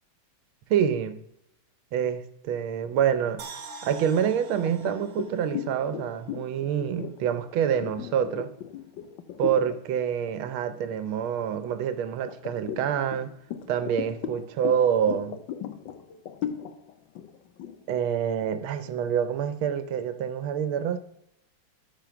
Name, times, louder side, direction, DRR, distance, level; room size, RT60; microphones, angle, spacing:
voice 1, 0.7-1.2 1.9-3.4 3.8-8.5 9.4-13.3 13.7-15.4 17.9-21.0, right 8 dB, 90° right, 1.6 m, -27 dB
sound 1, 3.4-6.6 6.9-7.0, right 4 dB, 50° right, 0.9 m, -45 dB
sound 2, 4.7-9.8 10.2-10.5 10.9-11.7 12.3-19.0, left 9 dB, 70° left, 1.4 m, -37 dB
9.1 x 5.0 x 5.9 m
omnidirectional pair, 2.2 m